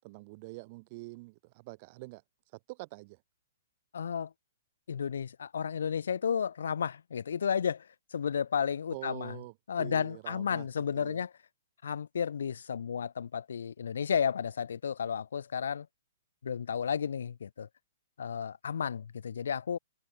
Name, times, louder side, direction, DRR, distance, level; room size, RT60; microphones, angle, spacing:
voice 1, 0.0-2.2 2.7-3.2 8.9-10.7 11.0-11.2, right 25 dB, 35° right, 7.0 m, -45 dB
voice 2, 3.9-4.3 4.9-7.8 8.1-9.3 9.7-11.3 11.8-15.9 16.4-17.7 18.2-19.8, left 7 dB, 85° left, 2.2 m, -32 dB
hypercardioid pair, 165°, 0 cm